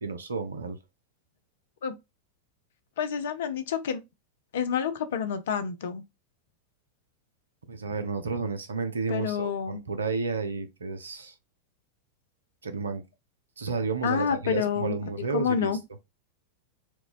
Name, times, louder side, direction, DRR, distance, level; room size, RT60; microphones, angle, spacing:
voice 1, 0.0-0.8 7.7-11.3 12.6-13.0 13.6-15.8, right 4 dB, 70° right, 0.6 m, -31 dB
voice 2, 3.0-4.0 4.5-6.0 9.1-9.8 14.0-14.9 15.3-15.8, left 7 dB, 60° left, 0.5 m, -28 dB
4.5 x 2.2 x 2.4 m
figure-of-eight pair, 90°, 0 cm